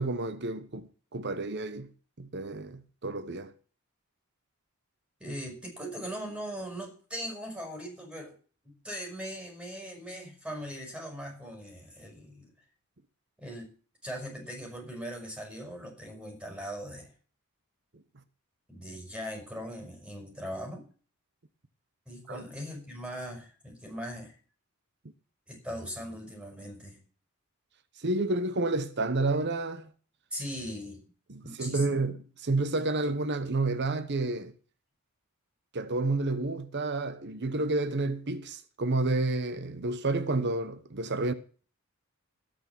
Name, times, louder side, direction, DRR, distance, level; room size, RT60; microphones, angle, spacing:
voice 1, 0.0-1.9 2.2-3.5 22.3-22.4 28.0-29.9 31.3-32.2 32.4-34.5 35.7-41.3, right 2 dB, 50° right, 1.0 m, -30 dB
voice 2, 5.2-8.4 8.6-12.5 13.4-13.7 14.0-17.1 18.7-20.8 22.1-24.4 25.5-27.0 30.3-31.0 31.4-32.0, equal, 5° right, 6.0 m, -40 dB
18.0 x 6.7 x 6.1 m
head